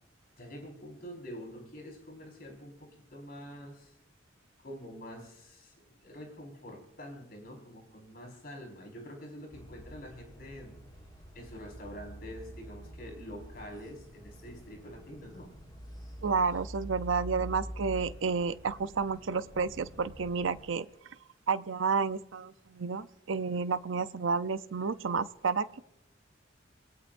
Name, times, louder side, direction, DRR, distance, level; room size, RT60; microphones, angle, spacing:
voice 1, 0.3-3.9 4.6-10.8 11.3-15.5, equal, 50° left, 1 dB, 4.9 m, -46 dB
sound 1, 9.5-20.6, equal, 20° left, 3.8 m, -46 dB
voice 2, 16.2-20.9 21.5-25.8, right 5 dB, 85° right, 13 dB, 0.6 m, -31 dB
28.0 x 19.5 x 2.6 m, 0.84 s
head